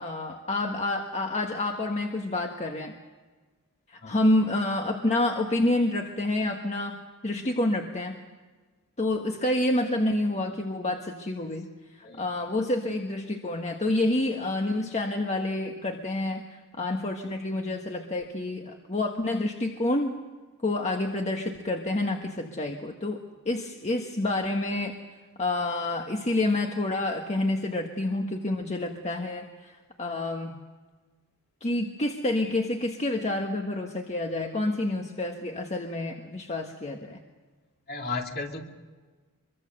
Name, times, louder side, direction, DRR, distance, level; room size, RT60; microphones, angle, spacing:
voice 1, 0.0-2.9 3.9-8.2 9.0-11.7 12.2-20.2 20.6-25.0 25.4-30.5 31.6-37.2, left 2 dB, 30° left, 2 dB, 1.5 m, -28 dB
voice 2, 37.9-38.6, left 3 dB, 50° left, 2 dB, 2.6 m, -34 dB
24.5 x 23.5 x 6.7 m, 1.3 s
head